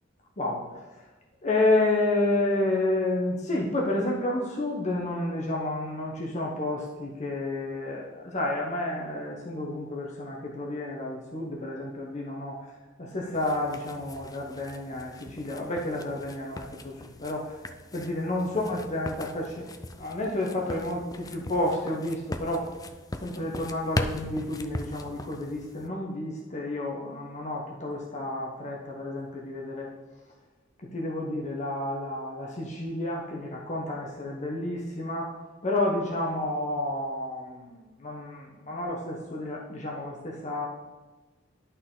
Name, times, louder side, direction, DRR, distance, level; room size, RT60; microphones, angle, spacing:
voice 1, 1.4-12.6 13.0-17.6 17.9-19.6 19.9-22.7 23.2-29.9 30.9-35.3 35.6-40.7, left 2 dB, 35° left, -2 dB, 0.9 m, -30 dB
sound 1, 13.3-25.9, left 2 dB, 20° left, 0.4 m, -39 dB
11.5 x 4.1 x 3.8 m, 1.2 s
head